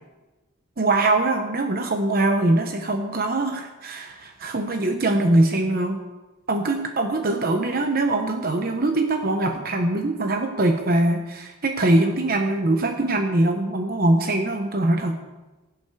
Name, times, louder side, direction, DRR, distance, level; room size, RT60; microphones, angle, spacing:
voice 1, 0.8-6.0 6.5-15.2, right 2 dB, 45° right, 5 dB, 0.9 m, -22 dB
15.0 x 11.5 x 4.8 m, 1.2 s
head